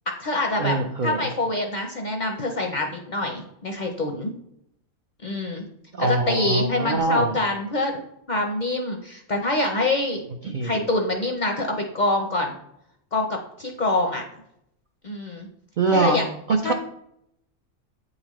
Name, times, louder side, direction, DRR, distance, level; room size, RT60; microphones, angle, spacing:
voice 1, 0.1-0.8 1.0-4.3 5.2-5.6 6.0-7.9 8.3-10.2 10.6-12.6 13.1-14.2 15.0-15.5 15.9-16.2 16.6-16.7, left 2 dB, 50° left, 2 dB, 0.5 m, -25 dB
voice 2, 0.6-1.2 5.9-7.4 10.4-10.9 15.8-16.2 16.5-16.7, right 3 dB, 60° right, 3 dB, 0.5 m, -23 dB
8.5 x 4.1 x 3.0 m, 0.76 s
omnidirectional pair, 1.3 m